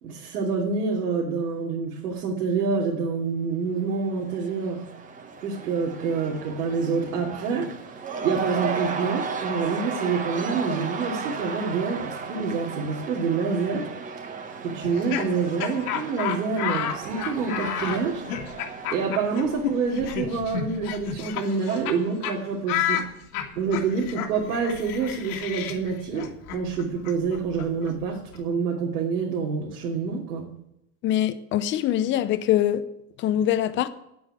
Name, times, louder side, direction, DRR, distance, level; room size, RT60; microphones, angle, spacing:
voice 1, 0.0-4.8 5.4-7.7 8.2-13.9 14.6-18.2 18.9-23.0 23.6-30.5, right 5 dB, 85° right, 2.9 m, -27 dB
Cheering / Crowd, 3.8-20.7, right 5 dB, 15° right, 1.0 m, -35 dB
Laughter, 14.8-22.0 22.2-22.4 22.7-28.4, left 9 dB, 70° left, 2.1 m, -31 dB
voice 2, 31.0-32.9 33.2-33.9, left 11 dB, 25° left, 0.7 m, -23 dB
9.6 x 8.7 x 9.7 m
supercardioid pair, 145°, 46 cm